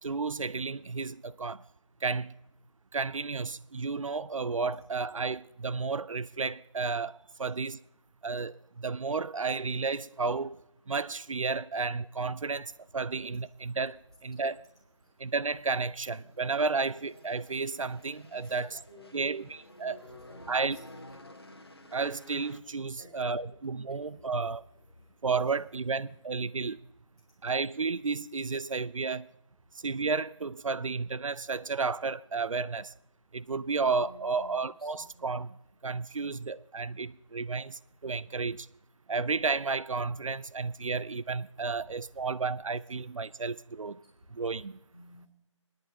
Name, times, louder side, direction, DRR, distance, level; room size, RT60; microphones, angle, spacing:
voice 1, 0.0-1.6 2.0-2.3 2.9-7.8 8.2-10.6 10.9-14.6 15.2-18.8 19.1-20.0 20.5-20.8 21.9-24.6 25.2-26.8 27.4-29.3 29.8-32.9 33.3-35.6 35.8-38.7 39.1-44.0 44.3-44.8, right 4 dB, 90° right, 0.4 m, -32 dB
sound 1, 15.0-22.6, left 1 dB, 50° left, 1.3 m, -52 dB
voice 2, 18.3-19.5 19.8-20.7 21.1-21.2 22.9-23.5 23.9-24.5 24.9-25.1 26.0-26.1 33.6-35.2 44.9-45.3, left 1 dB, 10° right, 3.2 m, -54 dB
20.0 x 10.5 x 2.9 m
figure-of-eight pair, 175°, 16 cm